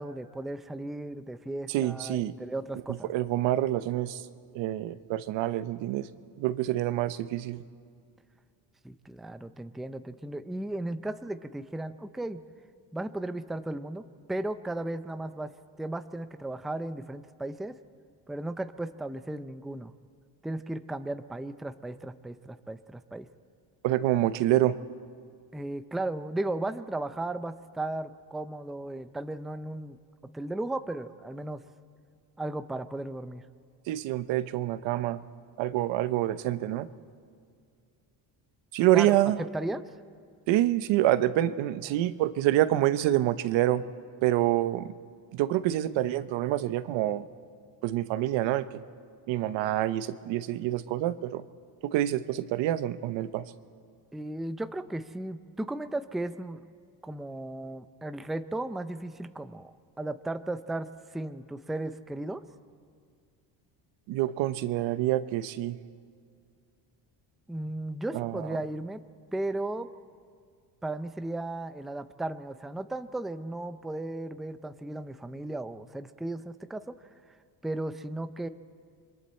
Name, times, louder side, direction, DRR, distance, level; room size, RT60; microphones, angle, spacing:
voice 1, 0.0-3.1 8.8-12.4 12.9-15.5 15.8-17.8 18.3-19.9 20.4-23.3 25.5-30.0 30.3-31.6 32.4-33.4 38.9-39.8 54.1-56.6 57.0-62.4 67.5-69.0 69.3-69.9 70.8-77.0 77.6-78.5, right 2 dB, ahead, 11 dB, 0.5 m, -35 dB
voice 2, 1.7-2.3 3.1-4.2 4.5-6.1 6.4-7.6 23.8-24.8 33.9-35.3 35.6-36.9 38.7-39.4 40.5-43.8 44.2-44.9 45.3-47.3 47.8-48.8 49.3-51.4 51.8-53.4 64.1-65.8 68.1-68.5, right 14 dB, 80° right, 13 dB, 0.9 m, -27 dB
29.0 x 22.5 x 4.4 m, 2.2 s
cardioid pair, 100°, 45 cm